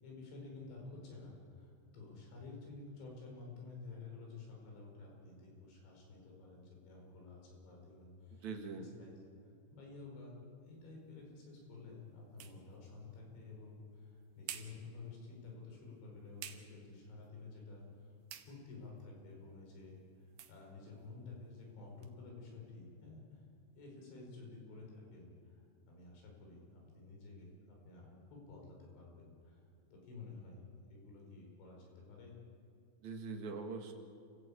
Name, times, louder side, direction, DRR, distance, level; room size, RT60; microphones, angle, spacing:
voice 1, 0.0-8.5 8.8-9.2 9.7-10.4 10.6-18.1 18.5-23.2 23.8-29.6 29.9-30.6 30.9-32.4, left 3 dB, 85° left, -1 dB, 7.2 m, -52 dB
voice 2, 8.4-8.9 33.0-33.9, right 4 dB, 50° right, 3 dB, 2.7 m, -42 dB
sound 1, 10.7-22.2, right 11 dB, 85° right, 3.5 m, -56 dB
28.0 x 15.5 x 8.6 m, 2.4 s
omnidirectional pair, 5.1 m